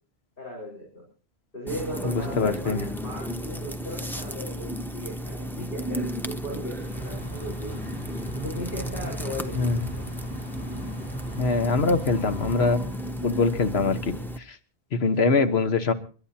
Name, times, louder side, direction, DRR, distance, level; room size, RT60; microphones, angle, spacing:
voice 1, 0.4-1.0 1.5-7.8 8.3-10.0, equal, 55° left, -2 dB, 5.2 m, -37 dB
sound 1, 1.7-14.4, equal, ahead, 0.6 m, -34 dB
voice 2, 2.0-2.8 9.5-9.8 11.4-12.8 13.2-14.1 14.9-15.9, left 4 dB, 75° left, 9 dB, 1.5 m, -23 dB
sound 2, 6.7-13.5, right 1 dB, 35° left, 3.4 m, -38 dB
30.0 x 12.0 x 2.9 m, 0.38 s
omnidirectional pair, 1.1 m